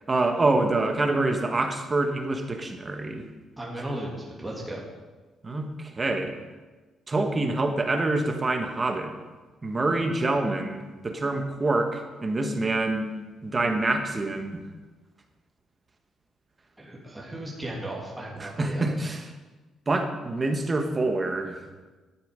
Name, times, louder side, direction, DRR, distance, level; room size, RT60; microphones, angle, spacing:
voice 1, 0.1-3.3 5.4-6.4 7.1-9.1 9.6-13.1 13.4-14.6 18.4-19.3 19.9-21.6, right 2 dB, 30° right, 5 dB, 1.6 m, -26 dB
voice 2, 3.6-4.8 16.8-18.8, right 1 dB, 10° right, -4 dB, 2.9 m, -36 dB
11.5 x 9.2 x 5.2 m, 1.3 s
cardioid pair, 90°, 0 cm